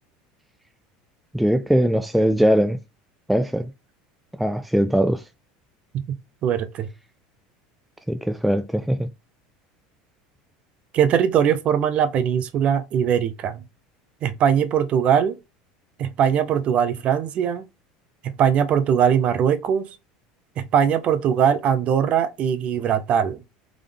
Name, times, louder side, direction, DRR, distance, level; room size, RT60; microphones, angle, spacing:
voice 1, 1.3-2.8 3.3-3.7 4.4-5.2 8.1-9.1, equal, ahead, 0.3 m, -20 dB
voice 2, 6.4-6.9 10.9-13.6 14.2-15.4 16.0-17.6 18.2-19.9 20.6-23.4, right 8 dB, 40° right, 0.6 m, -21 dB
3.7 x 3.4 x 3.4 m
supercardioid pair, 130°, 3 cm